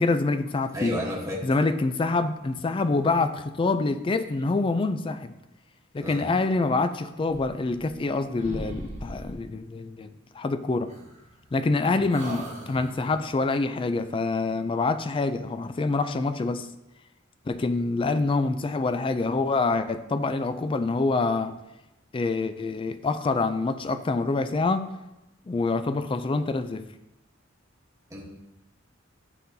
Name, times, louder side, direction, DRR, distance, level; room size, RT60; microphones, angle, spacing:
voice 1, 0.0-1.0 1.4-5.3 5.9-10.9 11.5-16.7 17.5-21.6 22.1-24.9 25.5-26.9, left 3 dB, 25° left, 10 dB, 0.3 m, -26 dB
voice 2, 0.7-1.4 6.0-6.3 28.1-28.2, equal, 15° right, -3 dB, 1.2 m, -32 dB
sound 1, 7.3-8.1 8.4-9.5 10.9-11.7 12.1-13.3, equal, 35° right, 1.2 m, -40 dB
10.5 x 3.9 x 2.7 m, 0.96 s
head